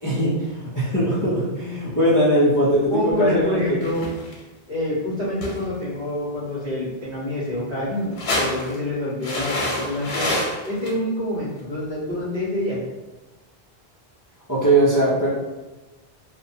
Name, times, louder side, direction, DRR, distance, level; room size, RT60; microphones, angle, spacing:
voice 1, 0.0-3.8 14.5-15.3, right 1 dB, 30° left, -8 dB, 0.4 m, -20 dB
voice 2, 2.9-4.1 4.7-10.3 10.6-12.8, left 1 dB, 60° right, -14 dB, 1.3 m, -27 dB
sound 1, 3.8-4.4 5.4-5.8 8.0-8.7 9.2-10.9 11.6-11.7, left 1 dB, 80° left, 0.9 m, -27 dB
2.7 x 2.2 x 2.6 m, 1.1 s
omnidirectional pair, 1.0 m